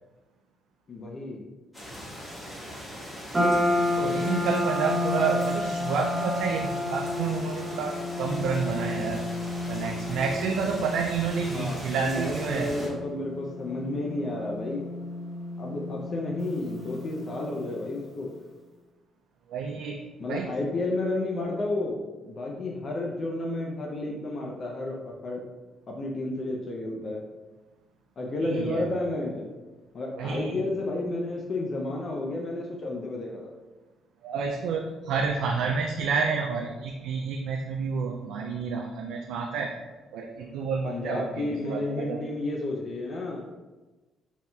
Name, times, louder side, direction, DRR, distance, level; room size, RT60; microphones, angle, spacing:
voice 1, 0.9-1.4 11.5-15.0 15.6-18.3 20.2-25.4 25.9-27.2 28.2-29.5 29.9-33.5 40.8-43.5, left 2 dB, 40° left, -1 dB, 0.5 m, -31 dB
sound 1, 1.7-12.9, equal, 15° left, 1.5 m, -40 dB
sound 2, 3.3-17.8, left 1 dB, 20° right, 0.9 m, -31 dB
voice 2, 4.0-9.2 9.7-12.7 19.5-20.0 20.3-20.5 28.4-28.9 30.2-30.7 34.2-39.7 40.1-42.2, right 5 dB, 85° right, 1 dB, 0.3 m, -29 dB
4.1 x 3.7 x 2.3 m, 1.2 s
cardioid pair, 135°, 0 cm